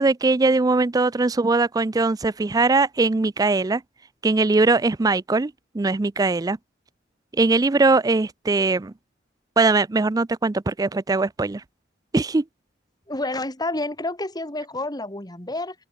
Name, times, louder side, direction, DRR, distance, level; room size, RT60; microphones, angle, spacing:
voice 1, 0.0-3.8 4.2-6.6 7.3-8.9 9.6-11.6 12.1-12.4, right 3 dB, 20° right, 0.4 m, -21 dB
voice 2, 13.1-15.7, left 2 dB, 20° left, 4.9 m, -29 dB
open air
head